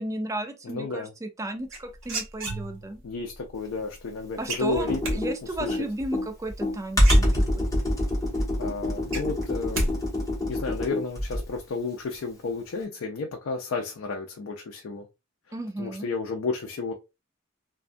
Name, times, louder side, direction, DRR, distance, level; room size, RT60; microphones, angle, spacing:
voice 1, 0.0-3.0 4.4-7.7 15.5-16.1, right 1 dB, 15° right, 0.4 m, -34 dB
voice 2, 0.6-1.1 3.0-5.2 5.6-5.8 8.6-10.0 10.5-15.1 15.8-16.9, left 4 dB, 70° left, 0.4 m, -32 dB
sound 1, 1.7-3.0 4.5-5.2 6.6-6.7 7.0-7.8 8.2-8.3 8.6-9.9 10.2-10.6, right 1 dB, 65° right, 1.0 m, -30 dB
Computer keyboard, 4.7-11.6, left 1 dB, 15° left, 0.9 m, -25 dB
2.5 x 2.2 x 2.5 m
head